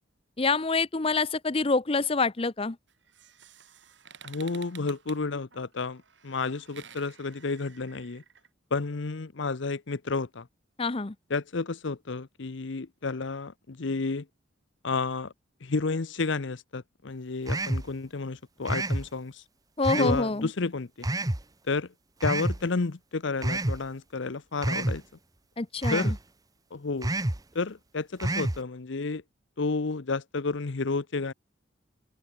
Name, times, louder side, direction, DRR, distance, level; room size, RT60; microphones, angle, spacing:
voice 1, 0.4-2.8 10.8-11.1 19.8-20.5 25.6-26.1, left 3 dB, 30° left, 0.7 m, -26 dB
sound 1, 2.9-8.5, right 8 dB, 60° right, 2.9 m, -52 dB
voice 2, 4.2-8.2 8.7-10.5 11.3-14.3 14.8-15.3 15.6-19.4 20.0-21.1 21.7-21.9 22.2-25.0 25.9-26.2 26.7-27.1 27.5-29.2 29.6-31.3, left 3 dB, 65° left, 0.7 m, -31 dB
sound 2, 17.5-17.9 18.7-19.0 19.8-20.2 21.0-21.4 22.2-22.6 23.4-23.8 24.6-25.0 25.8-26.2 27.0-27.4 28.2-28.6, right 1 dB, 20° right, 1.0 m, -28 dB
open air
head